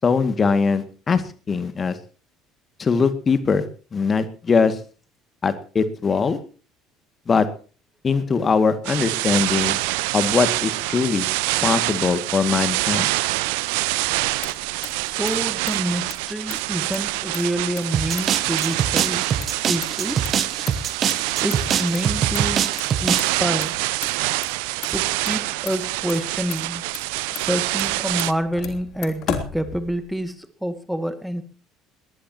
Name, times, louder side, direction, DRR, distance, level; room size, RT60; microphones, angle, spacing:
voice 1, 0.0-2.0 2.8-3.6 3.9-4.8 5.4-6.4 7.3-7.5 8.0-9.8 10.1-11.3 11.6-13.1, left 5 dB, 30° left, 11 dB, 2.1 m, -21 dB
sound 1, 8.8-28.3, right 22 dB, 60° right, 0.9 m, -25 dB
Motor vehicle (road), 14.0-30.3, left 9 dB, 50° left, 3.3 m, -38 dB
voice 2, 15.0-19.3 19.6-20.4 21.4-23.8 24.9-26.8 27.3-31.4, equal, ahead, 11 dB, 2.1 m, -27 dB
sound 2, 17.9-23.4, right 8 dB, 40° right, 1.5 m, -24 dB
21.0 x 19.5 x 2.9 m, 0.39 s
figure-of-eight pair, 60°, 0 cm